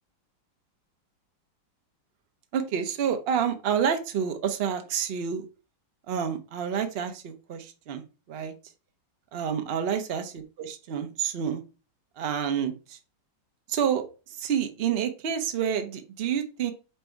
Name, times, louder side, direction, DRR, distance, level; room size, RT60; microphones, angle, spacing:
voice 1, 2.5-5.5 6.1-8.0 8.3-8.5 9.3-11.6 12.2-13.0 13.7-14.0 14.4-16.7, right 8 dB, 80° right, 6 dB, 0.5 m, -28 dB
4.4 x 2.7 x 4.5 m, 0.32 s
omnidirectional pair, 2.0 m